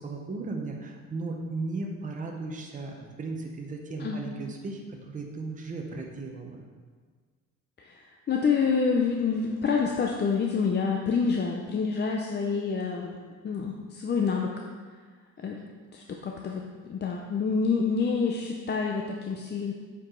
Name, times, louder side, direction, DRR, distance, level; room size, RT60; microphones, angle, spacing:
voice 1, 0.0-6.6, right 3 dB, 25° right, 1 dB, 0.7 m, -36 dB
voice 2, 7.8-13.2 13.4-14.7 15.4-15.6 15.9-19.7, left 5 dB, 35° left, 1 dB, 0.5 m, -27 dB
7.5 x 4.7 x 3.8 m, 1.5 s
cardioid pair, 130°, 31 cm